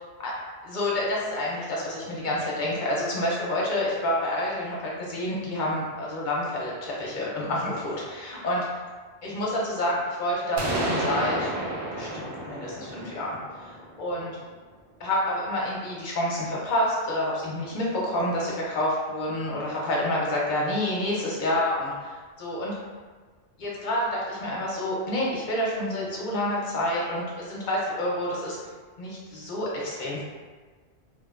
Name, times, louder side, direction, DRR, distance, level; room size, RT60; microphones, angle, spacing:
voice 1, 0.6-8.6 9.2-11.5 11.9-13.7 14.0-14.4 15.0-22.1 22.4-22.7 23.6-28.6 29.0-30.2, left 1 dB, 55° left, -4 dB, 0.6 m, -28 dB
sound 1, 10.6-14.4, right 1 dB, 80° right, 0.8 m, -31 dB
2.4 x 2.1 x 2.4 m, 1.4 s
omnidirectional pair, 1.1 m